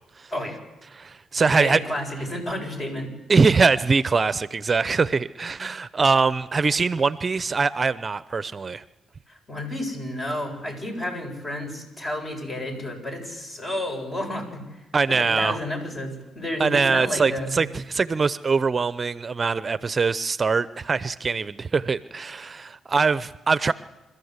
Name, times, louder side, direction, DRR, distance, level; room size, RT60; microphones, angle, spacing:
voice 1, 0.9-1.8 3.3-8.8 14.9-15.6 16.6-23.7, right 4 dB, 40° right, 15 dB, 0.6 m, -22 dB
voice 2, 1.6-3.1 9.3-14.8 15.2-17.6, left 1 dB, 40° left, 3 dB, 7.6 m, -31 dB
28.0 x 13.5 x 8.1 m, 1.0 s
supercardioid pair, 60°, 0 cm